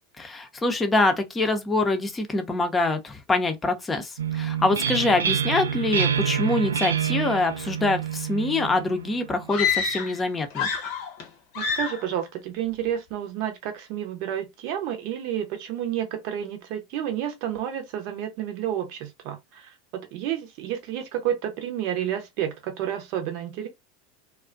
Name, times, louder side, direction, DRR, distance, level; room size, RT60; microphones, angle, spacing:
voice 1, 0.2-10.7, left 2 dB, 20° left, 0.6 m, -25 dB
sound 1, 4.2-9.8, right 8 dB, 85° right, 0.3 m, -28 dB
sound 2, 9.5-10.2 10.5-11.3 11.5-12.1, left 6 dB, 60° left, 0.7 m, -27 dB
voice 2, 11.5-23.7, right 10 dB, 60° right, 0.7 m, -30 dB
2.4 x 2.1 x 2.5 m
hypercardioid pair, 90°, 0 cm